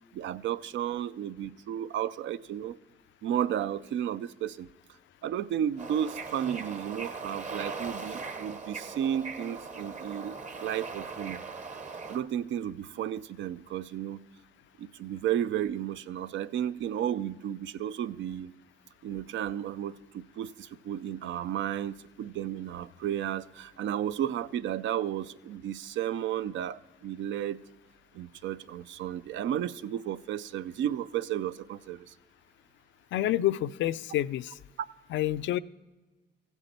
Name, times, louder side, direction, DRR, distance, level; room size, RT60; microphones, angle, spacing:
voice 1, 0.1-2.8 3.2-4.7 5.2-10.3 10.6-11.4 12.1-14.2 14.8-18.5 19.0-27.6 28.1-32.1, right 10 dB, 70° right, 0.5 m, -33 dB
Bird / Ocean, 5.8-12.2, right 4 dB, 35° right, 0.9 m, -40 dB
voice 2, 33.1-34.6 35.1-35.6, left 13 dB, 70° left, 0.4 m, -28 dB
15.5 x 8.1 x 4.2 m
cardioid pair, 90°, 20 cm